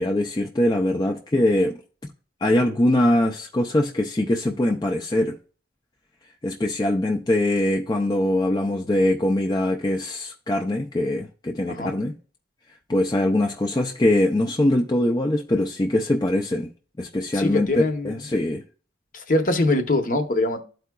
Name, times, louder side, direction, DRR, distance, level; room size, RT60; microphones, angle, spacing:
voice 1, 0.0-1.8 2.4-5.4 6.4-12.2 12.9-16.7 17.0-17.7 18.0-18.6, left 1 dB, 20° left, 0.4 m, -22 dB
voice 2, 17.3-18.2 19.1-20.6, left 2 dB, 45° left, 0.8 m, -23 dB
12.5 x 4.6 x 2.3 m
head